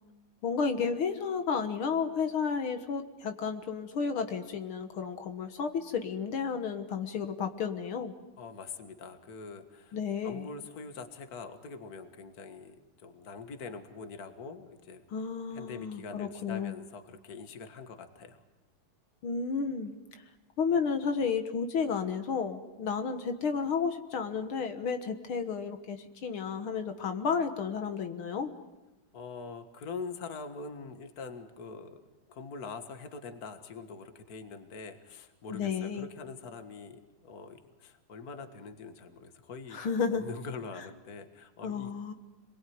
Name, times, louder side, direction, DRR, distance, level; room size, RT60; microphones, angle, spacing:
voice 1, 0.4-8.1 9.9-10.5 15.1-16.7 19.2-20.2 20.6-28.5 35.5-36.1 39.7-40.2 41.6-42.1, left 6 dB, 75° left, 7 dB, 2.3 m, -32 dB
voice 2, 8.4-10.0 10.2-15.0 15.5-18.4 29.1-32.0 32.3-39.8 40.1-41.9, left 4 dB, 45° left, 8 dB, 2.1 m, -44 dB
27.0 x 22.0 x 9.5 m, 1.0 s
omnidirectional pair, 2.3 m